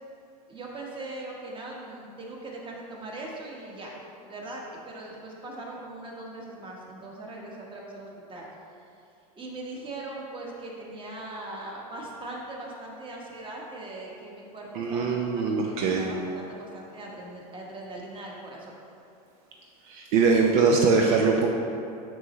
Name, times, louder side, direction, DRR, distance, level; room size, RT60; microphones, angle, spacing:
voice 1, 0.5-4.0 4.3-8.4 9.3-18.7, right 2 dB, 25° right, -2 dB, 1.3 m, -40 dB
voice 2, 14.7-16.1 19.9-21.5, right 4 dB, 65° right, 1 dB, 0.6 m, -22 dB
6.2 x 6.0 x 3.1 m, 2.6 s
supercardioid pair, 105°, 19 cm